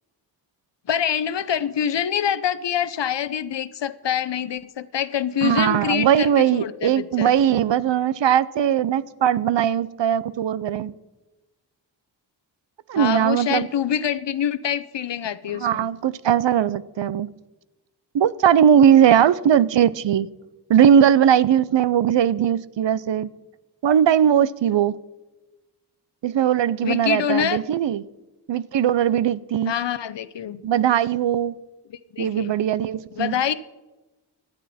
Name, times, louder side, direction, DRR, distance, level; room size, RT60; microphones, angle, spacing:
voice 1, 0.9-7.3 12.9-15.9 26.8-27.6 29.7-30.6 31.9-32.6 33.1-33.5, left 9 dB, 75° left, 0.8 m, -25 dB
voice 2, 5.4-10.9 12.9-13.7 15.6-17.3 18.1-20.3 20.7-23.3 23.8-25.0 26.2-28.0 28.5-29.7 30.6-31.5 32.2-33.4, right 9 dB, 85° right, 0.6 m, -19 dB
17.5 x 11.5 x 4.2 m
wide cardioid pair, 110°, 43 cm